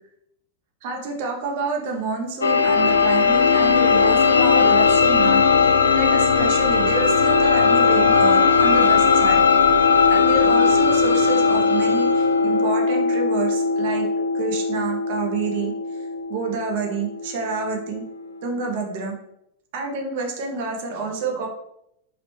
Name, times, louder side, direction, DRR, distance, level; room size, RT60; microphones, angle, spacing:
voice 1, 0.8-5.4 5.9-9.4 10.1-14.1 14.3-15.7 16.3-18.0 18.4-19.1 19.7-21.5, right 4 dB, 50° right, 1 dB, 0.6 m, -28 dB
sound 1, 2.4-18.0, left 5 dB, 75° left, 0.3 m, -18 dB
2.9 x 2.9 x 3.1 m, 0.79 s
figure-of-eight pair, 90°, 0 cm